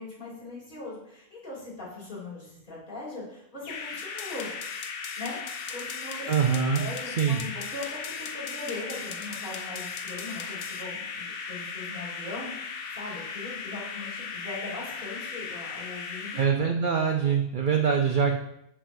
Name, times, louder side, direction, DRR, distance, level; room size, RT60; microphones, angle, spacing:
voice 1, 0.0-4.5 5.2-5.4 5.7-16.4, left 2 dB, 35° left, -6 dB, 3.0 m, -40 dB
sound 1, 3.6-16.5, left 5 dB, 55° left, 0.7 m, -37 dB
sound 2, 4.0-10.8, left 7 dB, 75° left, 1.1 m, -43 dB
voice 2, 6.3-7.4 16.4-18.3, right 6 dB, 70° right, 3 dB, 0.4 m, -24 dB
7.4 x 7.2 x 2.5 m, 0.78 s
omnidirectional pair, 1.5 m